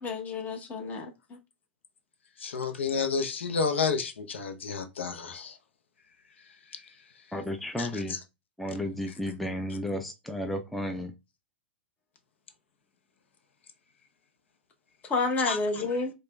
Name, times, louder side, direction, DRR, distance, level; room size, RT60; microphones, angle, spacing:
voice 1, 0.0-1.4 15.1-16.1, left 3 dB, 25° left, 0.8 m, -30 dB
voice 2, 2.4-5.5 7.8-8.2 15.5-15.6, left 5 dB, 80° left, 0.7 m, -30 dB
voice 3, 7.3-8.1 8.6-11.1, left 1 dB, ahead, 0.4 m, -33 dB
4.8 x 2.2 x 2.3 m
hypercardioid pair, 115°, 6 cm